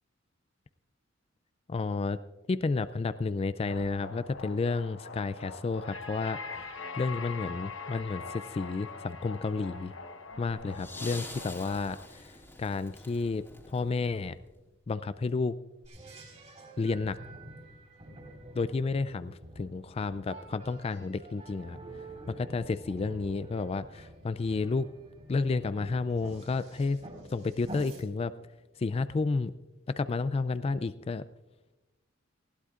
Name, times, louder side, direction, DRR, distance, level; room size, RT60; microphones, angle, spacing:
voice 1, 1.7-2.2 2.5-6.4 6.9-9.9 10.4-12.0 12.6-13.4 13.7-14.3 14.9-15.5 16.8-17.2 18.6-21.8 22.3-24.9 25.3-27.0 27.3-28.3 28.8-29.5 29.9-31.2, left 4 dB, 30° left, 14 dB, 0.3 m, -31 dB
sound 1, 3.7-12.1, left 4 dB, 75° left, 1.1 m, -43 dB
sound 2, 10.7-14.7 15.8-15.9, left 2 dB, 10° left, 2.2 m, -46 dB
sound 3, 15.9-28.0, right 2 dB, 35° right, 4.2 m, -48 dB
20.0 x 16.0 x 2.5 m, 1.1 s
head